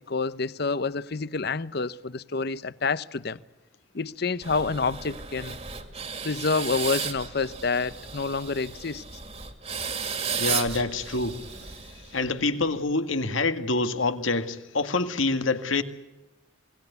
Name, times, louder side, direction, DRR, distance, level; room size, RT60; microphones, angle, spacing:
voice 1, 0.1-3.4 3.9-5.6 6.2-9.0, left 4 dB, 55° left, 0.8 m, -28 dB
sound 1, 4.4-12.4, right 6 dB, 30° right, 2.4 m, -34 dB
voice 2, 10.3-11.5 12.1-15.8, left 3 dB, 85° left, 2.0 m, -26 dB
27.5 x 20.0 x 8.2 m
head